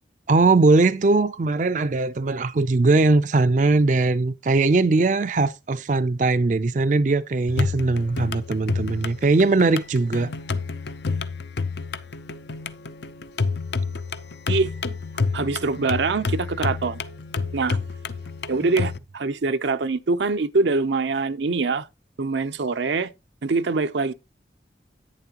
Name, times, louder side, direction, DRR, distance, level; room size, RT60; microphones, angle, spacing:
voice 1, 0.3-10.3, right 3 dB, 45° right, 0.4 m, -20 dB
sound 1, 7.5-19.0, left 4 dB, 75° left, 0.6 m, -29 dB
voice 2, 15.3-17.0 17.5-17.8 18.5-21.9 22.2-23.1 23.4-24.1, right 3 dB, 85° right, 0.6 m, -24 dB
10.5 x 9.0 x 2.9 m
head